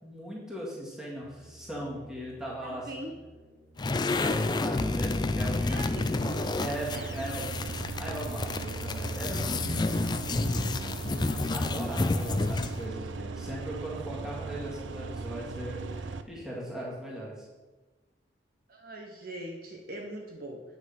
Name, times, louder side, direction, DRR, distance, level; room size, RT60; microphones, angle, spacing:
voice 1, 0.0-3.0 3.9-5.9 6.6-17.5, right 1 dB, 5° right, -5 dB, 2.1 m, -39 dB
sound 1, 1.2-11.7, right 2 dB, 30° right, 1.4 m, -55 dB
voice 2, 2.6-3.1 5.5-6.1 6.9-7.3 18.7-20.6, right 1 dB, 50° right, 0 dB, 1.1 m, -41 dB
sound 2, 3.8-12.8, left 3 dB, 25° left, 0.3 m, -30 dB
sound 3, 6.2-16.2, right 3 dB, 85° right, 0.5 m, -38 dB
9.0 x 6.1 x 5.4 m, 1.2 s
head